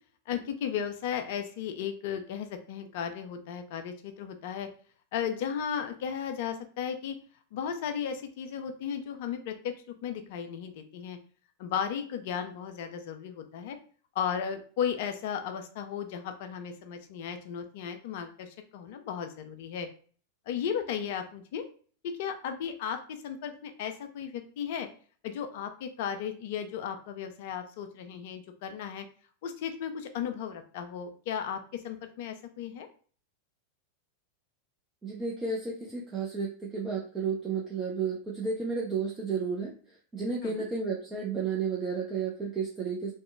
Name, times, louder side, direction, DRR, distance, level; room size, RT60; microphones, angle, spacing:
voice 1, 0.3-4.7 5.1-7.2 7.5-9.7 10.0-11.2 11.6-13.8 14.2-19.9 20.5-21.6 22.0-24.9 25.2-29.1 29.4-32.9 40.4-40.6, left 8 dB, 50° left, 7 dB, 0.4 m, -35 dB
voice 2, 35.0-43.1, right 5 dB, 15° right, -3 dB, 0.6 m, -32 dB
2.9 x 2.1 x 3.3 m, 0.43 s
figure-of-eight pair, 90°, 0 cm